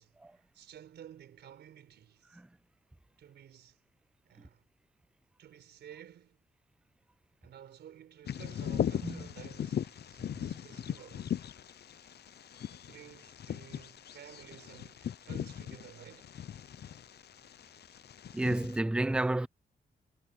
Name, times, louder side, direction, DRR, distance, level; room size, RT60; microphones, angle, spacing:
voice 1, 0.0-2.4 3.2-3.8 4.2-4.6 5.4-6.4 7.4-11.4 12.7-16.3, right 10 dB, 90° right, 4.5 m, -53 dB
Bird vocalization bird call bird song, 8.3-18.8, left 9 dB, 70° left, 0.8 m, -39 dB
voice 2, 18.3-19.5, right 2 dB, 5° right, 0.4 m, -31 dB
cardioid pair, 55°, 17 cm